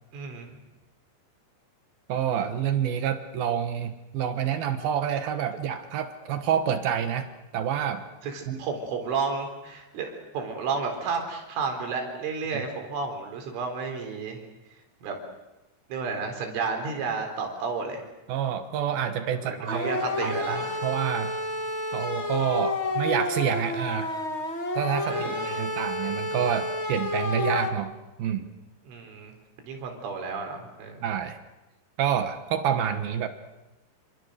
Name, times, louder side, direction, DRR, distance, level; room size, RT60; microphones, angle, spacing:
voice 1, 0.1-0.5 8.2-14.4 15.0-15.2 15.9-18.0 19.4-20.8 25.1-25.7 28.9-31.0, right 4 dB, 90° right, 4 dB, 6.5 m, -32 dB
voice 2, 2.1-7.3 7.5-8.0 8.5-8.7 18.3-19.9 20.2-21.3 21.9-24.1 24.7-27.9 28.2-28.5 31.0-31.4 32.0-33.3, right 9 dB, 65° right, 8 dB, 2.7 m, -28 dB
sound 1, 19.7-27.7, left 2 dB, 55° left, 0.7 m, -30 dB
28.5 x 26.5 x 6.6 m, 0.99 s
omnidirectional pair, 5.4 m